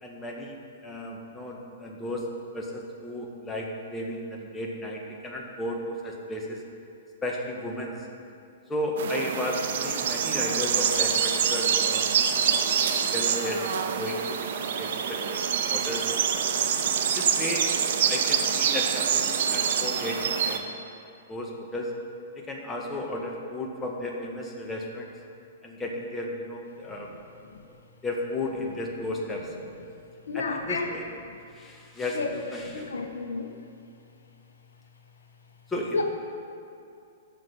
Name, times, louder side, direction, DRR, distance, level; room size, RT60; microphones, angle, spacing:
voice 1, 0.0-2.3 2.5-6.6 7.2-8.1 8.7-12.7 13.1-13.6 14.0-15.2 15.5-16.0 16.8-17.7 18.1-20.6 21.3-21.9 22.3-25.1 25.6-27.1 27.7-27.8 28.0-29.5 30.3-31.0 31.5-32.9 35.7-36.0, left 1 dB, 15° left, -1 dB, 1.7 m, -34 dB
sound 1, 9.0-20.6, right 7 dB, 60° right, 0.9 m, -26 dB
voice 2, 30.3-30.9 32.1-32.3 32.9-33.5 35.9-36.0, left 4 dB, 75° left, 4 dB, 1.1 m, -30 dB
15.0 x 6.8 x 5.5 m, 2.5 s
figure-of-eight pair, 110°, 0 cm